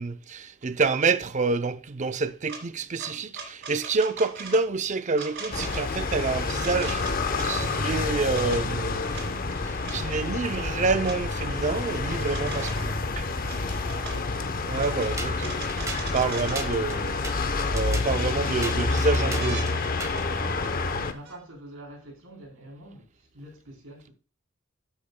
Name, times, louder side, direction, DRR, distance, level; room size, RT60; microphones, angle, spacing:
voice 1, 0.0-9.1 9.9-13.3 14.7-15.6 16.1-17.2 17.7-19.7 20.3-20.4, right 4 dB, 35° right, 0.5 m, -28 dB
Bike Horn play, 2.5-2.6 3.0-4.6 5.1-5.8 6.6-7.5 8.1-8.6 9.1-9.3 9.8-10.0 11.0-11.2 12.1-12.9 13.4-14.2 14.7-16.7 17.7-17.8 18.2-18.7 19.4-19.7 21.2-21.4, right 5 dB, 55° right, 2.7 m, -39 dB
sound 1, 5.5-21.1, left 3 dB, 45° left, 0.8 m, -28 dB
voice 2, 13.7-14.5 20.6-24.1, right 1 dB, 80° right, 3.6 m, -46 dB
sound 2, 15.2-20.3, right 3 dB, 15° right, 1.1 m, -39 dB
12.0 x 8.4 x 2.2 m
head